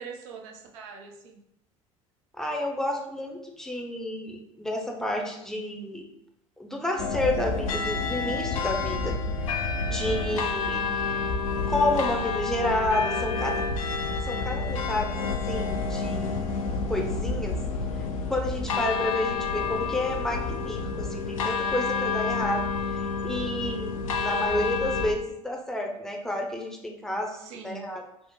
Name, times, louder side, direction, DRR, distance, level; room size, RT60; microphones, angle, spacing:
voice 1, 0.0-1.4 9.8-10.4 27.3-27.9, right 5 dB, 70° right, 2 dB, 0.6 m, -43 dB
voice 2, 2.4-6.0 6.6-9.2 9.9-10.9 11.7-13.6 14.2-16.5 16.8-17.6 18.2-22.6 22.9-27.4 27.6-28.0, left 1 dB, 5° left, 1 dB, 0.6 m, -30 dB
sound 1, 7.0-25.1, left 4 dB, 85° left, 0.4 m, -29 dB
3.0 x 2.1 x 3.5 m, 0.80 s
hypercardioid pair, 70°, 17 cm